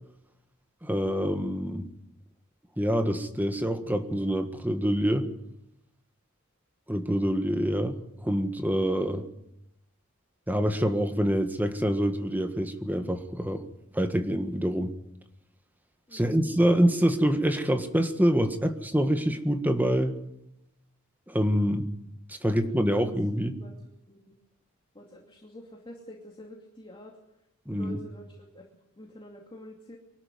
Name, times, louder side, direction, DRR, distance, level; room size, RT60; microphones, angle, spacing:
voice 1, 0.8-1.9 2.8-5.3 6.9-8.0 8.2-9.2 10.5-13.6 13.9-14.9 16.1-20.1 21.3-21.9 22.3-23.6 27.7-28.0, equal, 10° right, 7 dB, 1.6 m, -26 dB
voice 2, 16.1-16.5 22.4-22.5 22.8-23.0 23.6-23.7 24.1-24.3 24.9-27.2 27.7-28.7 29.0-30.0, left 1 dB, 25° left, -1 dB, 2.6 m, -47 dB
24.0 x 12.5 x 9.7 m, 0.82 s
head